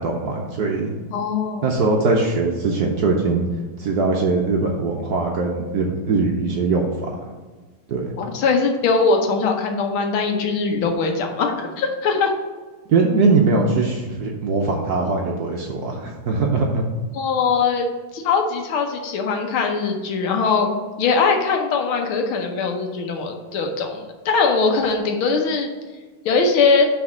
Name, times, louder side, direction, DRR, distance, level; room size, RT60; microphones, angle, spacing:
voice 1, 0.0-1.0 1.6-3.4 3.8-7.1 7.9-8.1 12.9-16.8, right 3 dB, 65° right, 0 dB, 1.0 m, -21 dB
voice 2, 1.1-1.7 8.2-12.3 17.1-17.9 18.1-20.7 21.0-25.7 26.2-26.9, left 4 dB, 75° left, 4 dB, 1.7 m, -21 dB
6.0 x 4.1 x 6.4 m, 1.3 s
omnidirectional pair, 2.3 m